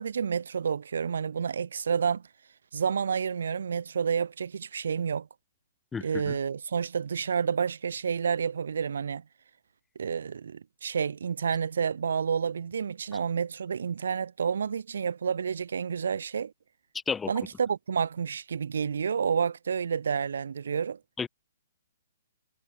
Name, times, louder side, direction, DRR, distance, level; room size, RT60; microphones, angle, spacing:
voice 1, 0.0-2.2 2.7-5.3 6.0-9.2 10.0-16.5 17.3-21.0, right 6 dB, 80° right, 1.8 m, -29 dB
voice 2, 5.9-6.4 17.1-17.3 21.2-21.3, left 6 dB, 10° left, 2.2 m, -32 dB
hypercardioid pair, 165°, 0 cm